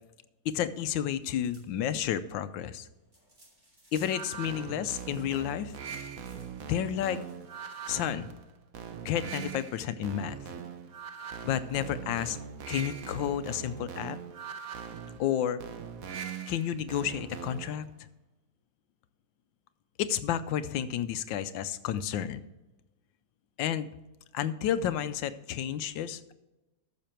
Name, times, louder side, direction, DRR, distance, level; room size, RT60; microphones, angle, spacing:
voice 1, 0.4-2.9 3.9-5.7 6.7-7.2 7.9-8.3 9.0-10.4 11.4-12.4 12.7-14.2 15.2-15.6 16.5-17.9 20.0-22.4 23.6-23.9 24.3-26.3, left 10 dB, 90° left, 13 dB, 1.4 m, -31 dB
sound 1, 1.2-8.4, right 1 dB, 35° right, 3.9 m, -61 dB
sound 2, 4.0-17.8, right 7 dB, 55° right, 1.1 m, -41 dB
14.0 x 6.6 x 4.4 m, 1.0 s
omnidirectional pair, 2.0 m